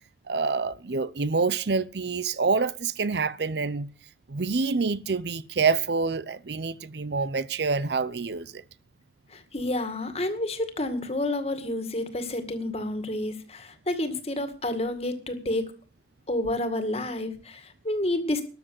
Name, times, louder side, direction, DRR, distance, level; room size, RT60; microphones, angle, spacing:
voice 1, 0.3-3.9 4.3-8.6, right 4 dB, 65° right, 0.7 m, -27 dB
voice 2, 9.3-15.7 16.3-18.4, left 1 dB, 35° left, 2.1 m, -29 dB
13.0 x 7.7 x 8.2 m
head